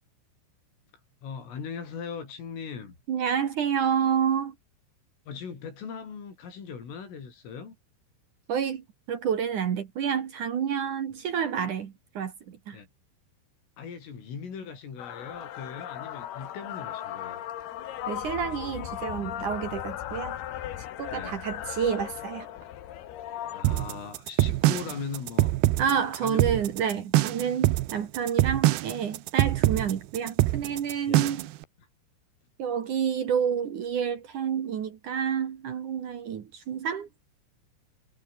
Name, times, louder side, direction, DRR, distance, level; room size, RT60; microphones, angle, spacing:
voice 1, 1.2-3.0 5.3-7.8 12.7-12.9 13.8-17.4 21.1-21.4 23.5-25.6 26.2-26.4 31.1-31.3 31.8-31.9, left 6 dB, 75° left, 8.8 m, -39 dB
voice 2, 3.1-4.5 8.5-12.8 18.1-20.4 21.0-22.5 25.8-31.4 32.6-37.1, right 8 dB, 55° right, 2.4 m, -29 dB
sound 1, 15.0-23.6, left 12 dB, 60° left, 3.2 m, -37 dB
sound 2, 23.6-31.6, right 16 dB, 80° right, 2.3 m, -24 dB
omnidirectional pair, 5.8 m